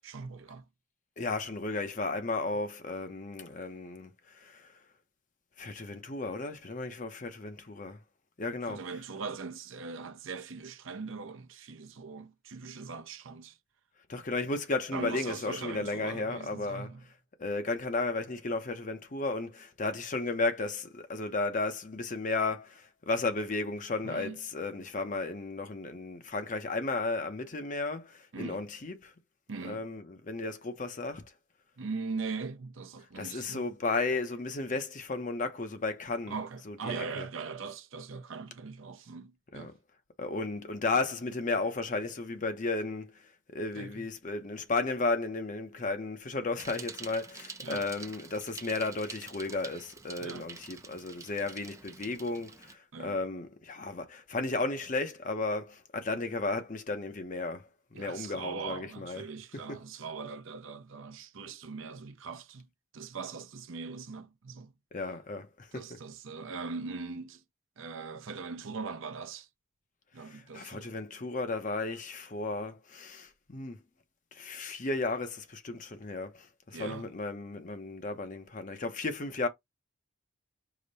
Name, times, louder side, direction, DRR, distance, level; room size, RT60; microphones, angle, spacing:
voice 1, 0.0-0.7 8.7-13.6 14.9-17.0 24.0-24.4 28.3-28.7 29.5-29.9 31.8-33.6 36.3-39.7 43.7-44.1 47.6-47.9 50.2-50.5 52.9-53.2 57.9-62.7 62.9-64.7 65.7-67.4 67.8-69.5 70.1-70.9 76.7-77.1, right 4 dB, 70° right, 0.6 m, -40 dB
voice 2, 1.2-4.1 4.4-4.7 5.6-8.0 8.4-9.0 14.1-16.9 17.4-29.1 29.6-31.2 33.2-37.3 39.5-39.7 40.2-43.1 43.5-59.3 59.5-59.8 64.9-66.0 70.2-73.8 74.3-79.5, left 3 dB, 40° left, 0.7 m, -34 dB
Bicycle, 46.6-52.7, right 4 dB, 15° right, 0.4 m, -47 dB
4.9 x 2.1 x 3.9 m
head